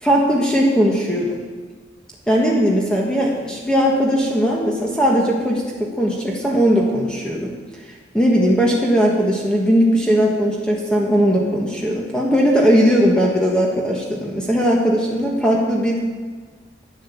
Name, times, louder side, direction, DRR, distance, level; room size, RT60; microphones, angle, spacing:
voice 1, 0.0-1.4 2.3-7.5 8.1-16.0, equal, 5° left, -3 dB, 1.4 m, -18 dB
11.5 x 9.0 x 7.3 m, 1.4 s
head